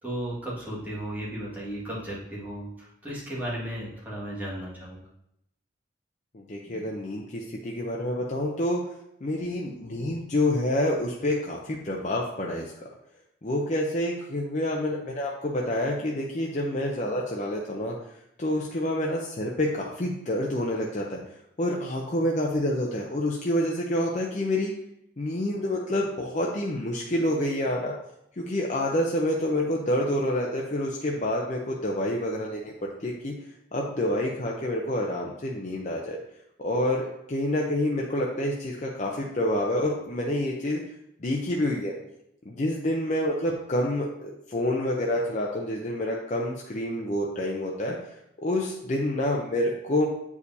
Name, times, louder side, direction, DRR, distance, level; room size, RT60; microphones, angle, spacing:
voice 1, 0.0-5.1 6.7-6.9, right 1 dB, 10° right, -8 dB, 1.9 m, -35 dB
voice 2, 6.3-8.8 9.2-12.9 13.4-17.9 18.4-21.2 21.6-24.7 25.2-27.9 28.4-32.7 33.0-33.3 33.7-36.2 36.6-40.8 41.2-41.9 42.5-48.0 48.4-50.1, left 1 dB, 40° left, -2 dB, 0.6 m, -28 dB
8.1 x 4.8 x 2.8 m, 0.78 s
head